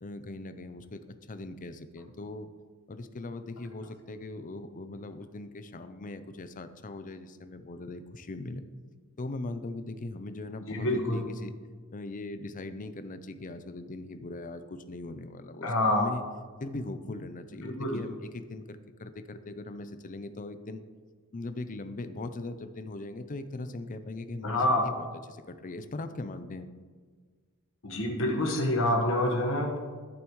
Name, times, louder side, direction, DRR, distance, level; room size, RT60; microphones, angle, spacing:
voice 1, 0.0-1.0 1.3-2.5 2.9-8.7 9.2-11.5 11.9-16.2 16.6-20.8 21.3-24.9 25.3-26.7, left 2 dB, 40° left, 10 dB, 0.5 m, -40 dB
voice 2, 10.7-11.2 15.6-16.0 17.6-18.0 24.4-24.8 27.8-29.8, left 1 dB, 65° left, 0 dB, 1.4 m, -27 dB
11.0 x 8.7 x 3.1 m, 1.6 s
head